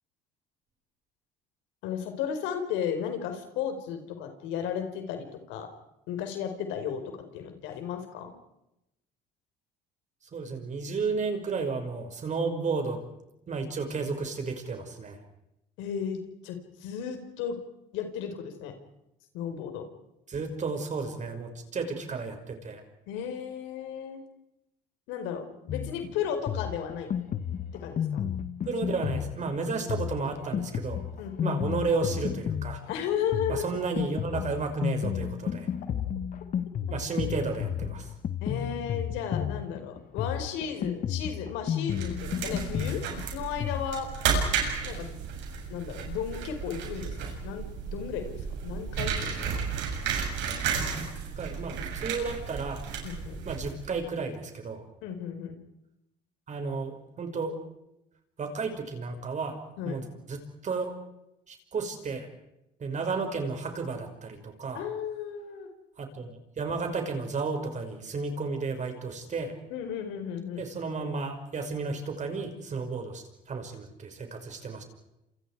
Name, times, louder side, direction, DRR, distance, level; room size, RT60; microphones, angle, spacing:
voice 1, 1.8-5.7 6.1-8.3 15.8-17.6 17.9-18.7 19.3-19.8 23.1-24.2 25.1-27.2 27.7-28.2 31.2-31.8 32.9-33.7 38.4-43.0 43.3-44.1 44.8-45.2 45.7-49.7 53.0-53.4 55.0-55.6 59.8-60.0 64.7-65.7 69.7-70.6, left 8 dB, 80° left, 6 dB, 4.8 m, -34 dB
voice 2, 10.3-13.0 13.5-15.2 20.3-22.8 28.7-31.0 31.4-32.8 33.5-35.7 36.9-38.1 50.8-51.0 51.4-52.8 53.5-54.8 56.5-57.6 58.4-59.6 59.8-60.9 61.5-62.3 62.8-64.8 66.0-69.5 70.6-74.8, right 4 dB, 40° right, 5 dB, 5.9 m, -33 dB
Drum kit, 25.7-43.9, left 8 dB, 45° left, 1.4 m, -33 dB
sound 1, 41.9-54.0, right 6 dB, 70° right, 7.4 m, -33 dB
29.0 x 27.5 x 4.9 m, 0.88 s
supercardioid pair, 95°, 19 cm